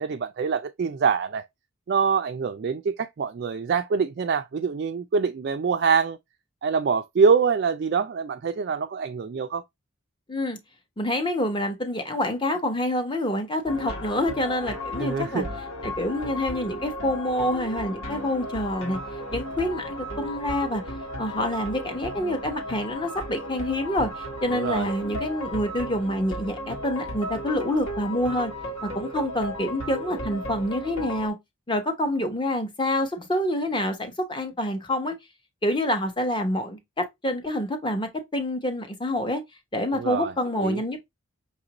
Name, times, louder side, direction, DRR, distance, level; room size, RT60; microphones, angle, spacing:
voice 1, 0.0-1.4 1.9-6.2 6.6-9.6 15.0-15.5 24.5-24.9 39.9-40.3 40.6-40.8, right 5 dB, 45° right, 0.3 m, -25 dB
voice 2, 11.0-15.4 15.8-19.0 19.3-20.8 21.2-28.5 28.8-31.3 31.7-35.1 35.6-39.4 39.7-41.0, left 1 dB, 20° left, 0.8 m, -27 dB
sound 1, 13.7-31.3, equal, 70° left, 1.2 m, -35 dB
5.8 x 2.5 x 2.9 m
head